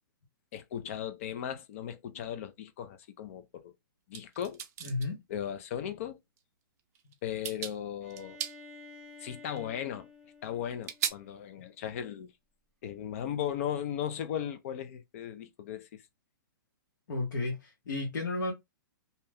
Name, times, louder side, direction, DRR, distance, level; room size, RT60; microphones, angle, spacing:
voice 1, 0.5-3.7 4.1-4.6 5.3-6.2 7.2-8.4 9.2-10.1 10.4-12.3 12.8-16.0, left 9 dB, 40° left, 0.4 m, -37 dB
sound 1, 4.1-5.1 6.4-6.5 6.9-7.1 7.4-7.8 8.1-8.6 9.6-9.7 10.8-11.1, right 9 dB, 45° right, 0.5 m, -35 dB
voice 2, 4.8-5.2 17.1-18.5, left 2 dB, 60° left, 1.1 m, -33 dB
Bowed string instrument, 8.0-11.8, left 2 dB, ahead, 1.0 m, -52 dB
2.7 x 2.2 x 3.3 m
hypercardioid pair, 165°, 11 cm